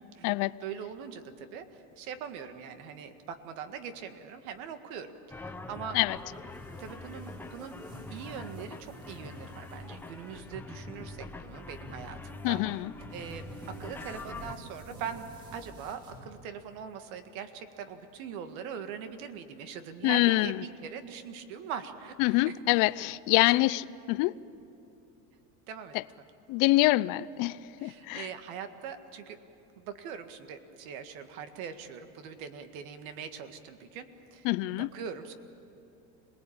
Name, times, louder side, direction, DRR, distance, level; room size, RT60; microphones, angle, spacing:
voice 1, 0.2-6.0 6.8-7.8 8.1-12.6 13.1-15.3 15.5-23.1 23.5-23.8 25.7-26.0 27.8-29.4 29.8-34.5 34.8-35.3, right 7 dB, 75° right, 1.9 m, -42 dB
sound 1, 5.3-14.5, left 2 dB, 5° left, 0.8 m, -44 dB
sound 2, 6.1-16.7, right 1 dB, 40° right, 5.7 m, -51 dB
voice 2, 12.4-12.9 20.0-20.6 22.2-24.3 26.5-28.3 34.4-34.9, left 20 dB, 50° left, 0.6 m, -25 dB
26.5 x 19.5 x 8.7 m
supercardioid pair, 145°, 42 cm